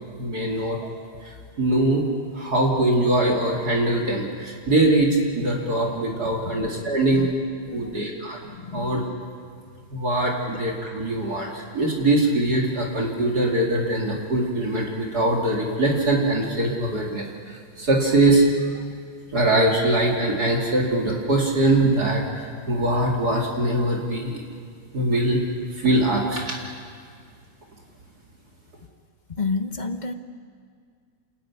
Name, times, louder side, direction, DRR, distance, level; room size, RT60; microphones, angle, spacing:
voice 1, 0.2-0.8 1.6-2.1 2.3-7.3 7.7-8.4 8.7-9.0 9.9-18.4 19.3-22.2 22.7-24.4 24.9-25.4 25.8-26.7, right 1 dB, 50° right, -1 dB, 2.9 m, -22 dB
voice 2, 6.4-6.8 7.1-7.3 7.7-8.1 8.4-9.1 18.8-18.9 29.4-30.1, left 4 dB, 45° left, 7 dB, 0.5 m, -31 dB
29.0 x 14.5 x 9.5 m, 2.1 s
omnidirectional pair, 2.2 m